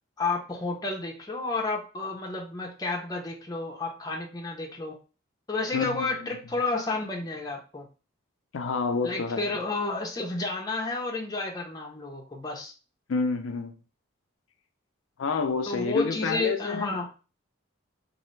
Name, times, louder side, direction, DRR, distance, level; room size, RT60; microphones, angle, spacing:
voice 1, 0.2-5.0 5.5-7.9 9.0-12.7 15.7-17.1, left 3 dB, 20° left, 0.7 m, -31 dB
voice 2, 5.7-6.3 8.5-9.5 13.1-13.8 15.2-17.0, left 4 dB, 75° left, 0.5 m, -29 dB
3.8 x 2.6 x 3.2 m
head